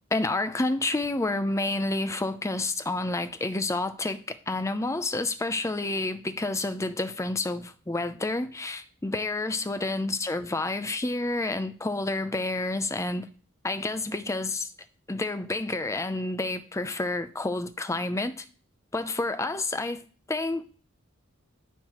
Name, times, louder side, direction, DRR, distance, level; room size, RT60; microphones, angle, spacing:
voice 1, 0.1-13.3 13.6-14.7 15.1-18.5 18.9-20.0 20.3-20.6, left 2 dB, 15° left, 0.5 m, -29 dB
12.5 x 4.6 x 3.0 m
head